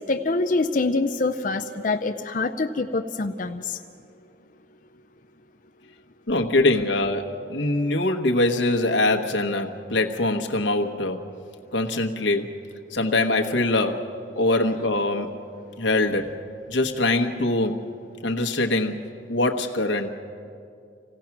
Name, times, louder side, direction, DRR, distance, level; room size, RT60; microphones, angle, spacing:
voice 1, 0.1-3.8, left 3 dB, 45° left, 5 dB, 0.5 m, -25 dB
voice 2, 6.3-11.2 11.7-12.6 12.9-14.1 14.4-15.3 15.8-16.3 16.7-17.8 18.2-19.0 19.3-20.1, left 2 dB, 90° left, 4 dB, 1.2 m, -23 dB
26.0 x 16.5 x 5.9 m, 2.5 s
head